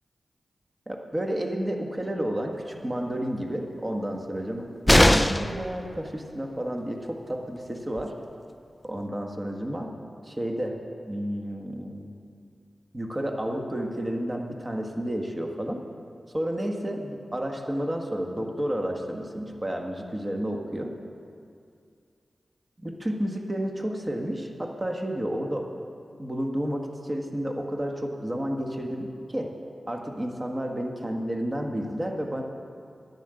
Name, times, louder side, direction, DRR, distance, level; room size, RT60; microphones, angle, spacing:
voice 1, 0.9-8.1 8.8-9.9 10.2-10.8 11.1-12.1 12.9-15.8 16.3-20.9 22.8-25.7 26.2-29.5 29.9-32.4, equal, 30° right, 3 dB, 1.6 m, -31 dB
sound 1, 4.9-5.6 7.6-7.7 8.0-8.1, left 1 dB, 10° left, 0.6 m, -19 dB
12.0 x 9.1 x 8.0 m, 2.4 s
cardioid pair, 50°, 0 cm